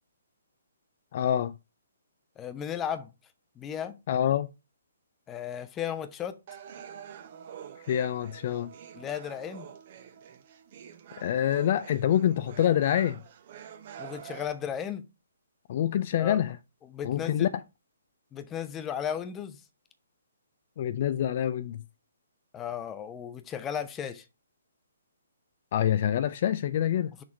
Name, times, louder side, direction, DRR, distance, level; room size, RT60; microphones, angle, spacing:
voice 1, 1.1-1.5 4.1-4.5 7.9-8.7 11.2-13.2 15.7-16.6 17.0-17.5 20.8-21.8 25.7-27.1, left 10 dB, 45° left, 0.4 m, -26 dB
voice 2, 2.4-3.1 3.6-4.0 5.3-6.4 8.9-9.7 14.0-15.0 16.2-16.4 16.8-17.5 18.3-19.6 22.5-24.2, left 9 dB, 15° left, 0.7 m, -35 dB
sound 1, 6.5-14.5, right 9 dB, 45° right, 0.8 m, -46 dB
6.4 x 3.6 x 4.4 m
figure-of-eight pair, 130°, 0 cm